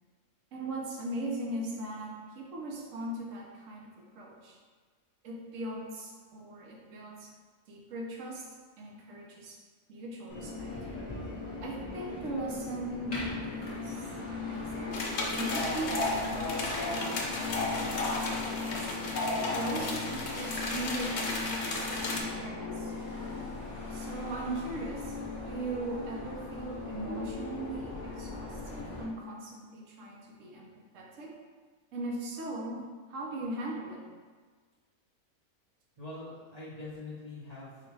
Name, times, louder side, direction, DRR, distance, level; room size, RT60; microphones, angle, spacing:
voice 1, 0.5-4.6 5.2-7.3 7.7-8.5 8.8-9.6 9.9-10.8 11.6-14.0 14.5-19.0 19.5-22.9 23.9-25.2 25.5-31.3 31.9-34.1, right 1 dB, 65° right, -1 dB, 1.1 m, -39 dB
Subway metro underground, 10.3-29.0, left 3 dB, 30° left, 1.2 m, -37 dB
sound 1, 14.9-22.2, left 2 dB, 85° left, 1.3 m, -35 dB
voice 2, 36.0-37.9, left 2 dB, 30° right, -11 dB, 0.9 m, -43 dB
4.8 x 2.4 x 4.6 m, 1.5 s
omnidirectional pair, 1.5 m